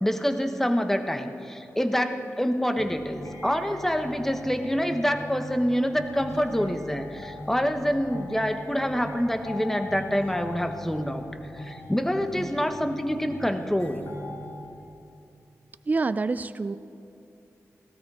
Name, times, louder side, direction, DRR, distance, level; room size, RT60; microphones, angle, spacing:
voice 1, 0.0-11.2 11.5-14.0, equal, 5° left, 7 dB, 0.9 m, -26 dB
sound 1, 2.7-14.7, left 2 dB, 70° left, 3.6 m, -41 dB
voice 2, 15.9-16.8, right 3 dB, 30° right, 13 dB, 0.4 m, -27 dB
17.5 x 16.0 x 4.8 m, 2.8 s
wide cardioid pair, 120°, 6 cm